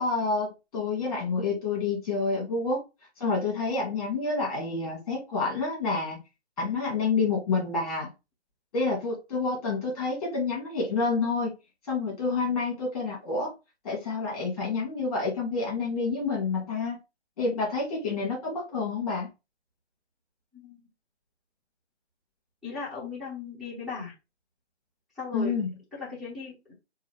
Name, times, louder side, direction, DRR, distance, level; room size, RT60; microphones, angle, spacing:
voice 1, 0.0-2.8 3.2-6.2 6.6-8.1 8.7-11.5 11.8-13.5 13.8-17.0 17.4-19.3 25.3-25.7, left 4 dB, 35° left, -2 dB, 2.0 m, -28 dB
voice 2, 22.6-24.1 25.1-25.5 25.9-26.7, left 5 dB, ahead, -7 dB, 1.7 m, -37 dB
3.8 x 2.5 x 3.3 m, 0.26 s
figure-of-eight pair, 145°, 34 cm